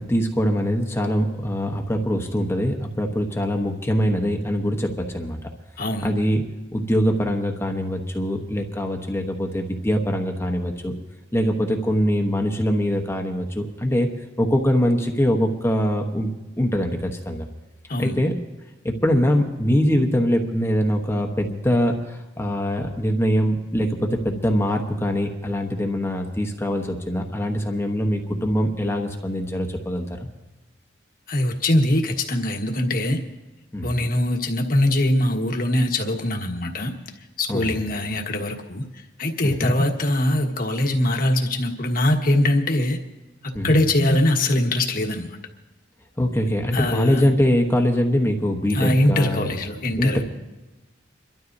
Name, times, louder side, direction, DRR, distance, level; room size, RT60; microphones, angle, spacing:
voice 1, 0.0-5.4 6.0-6.4 6.7-10.9 11.3-14.1 14.4-17.5 18.0-18.3 18.8-30.2 33.7-33.9 37.5-37.8 39.4-39.7 43.5-43.8 46.2-49.5 50.0-50.2, equal, 15° left, 3 dB, 1.0 m, -23 dB
voice 2, 5.8-6.1 17.9-18.2 31.3-33.2 33.8-36.9 37.4-38.8 39.2-43.0 43.4-45.4 46.7-47.3 48.7-50.2, left 1 dB, 50° left, 3 dB, 1.4 m, -22 dB
28.0 x 12.5 x 2.7 m, 1.1 s
head